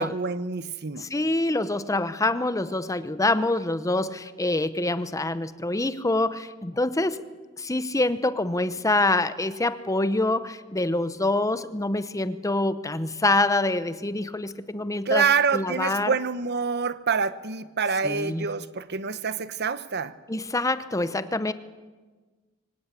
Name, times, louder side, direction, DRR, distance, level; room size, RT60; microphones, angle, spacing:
voice 1, 0.0-1.1 15.1-20.1, right 5 dB, 55° right, 13 dB, 0.9 m, -26 dB
voice 2, 1.0-7.2 7.6-15.3 15.5-16.2 18.0-18.5 20.3-21.5, left 2 dB, 15° left, 13 dB, 0.8 m, -26 dB
24.5 x 17.5 x 8.4 m, 1.4 s
head